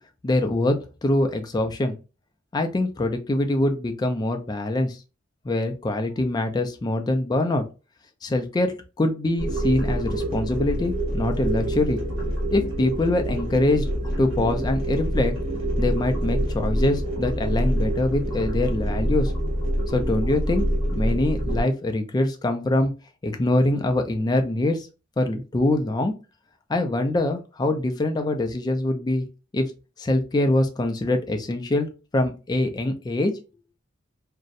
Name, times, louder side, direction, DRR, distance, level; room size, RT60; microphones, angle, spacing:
voice 1, 0.2-0.8 1.0-1.9 2.5-5.0 5.4-7.7 8.2-12.0 12.5-13.8 14.2-15.4 15.8-19.3 19.9-20.7 20.9-22.9 23.2-24.9 25.2-26.1 26.7-29.2 29.5-29.7 30.0-31.9 32.1-33.3, left 1 dB, 20° left, 5 dB, 0.3 m, -24 dB
sound 1, 9.4-21.6, equal, 80° right, 1.3 m, -26 dB
2.6 x 2.0 x 2.4 m, 0.31 s
head